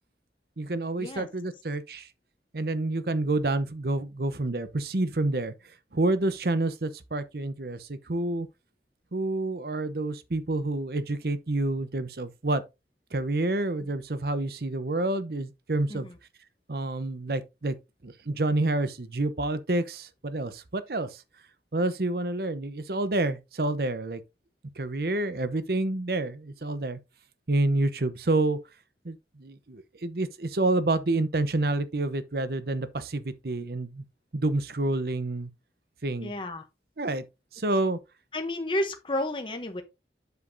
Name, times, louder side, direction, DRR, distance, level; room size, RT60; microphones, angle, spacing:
voice 1, 0.6-2.1 2.5-5.5 5.9-8.5 9.1-12.6 13.1-16.1 16.7-17.8 18.0-21.2 21.7-24.2 24.8-27.0 27.5-28.6 29.0-34.0 34.3-35.5 36.0-36.3 37.0-37.2 37.5-38.0, right 2 dB, 60° right, 0.8 m, -28 dB
voice 2, 36.2-36.6 38.3-39.8, left 1 dB, 30° left, 0.8 m, -31 dB
8.0 x 7.3 x 2.7 m
head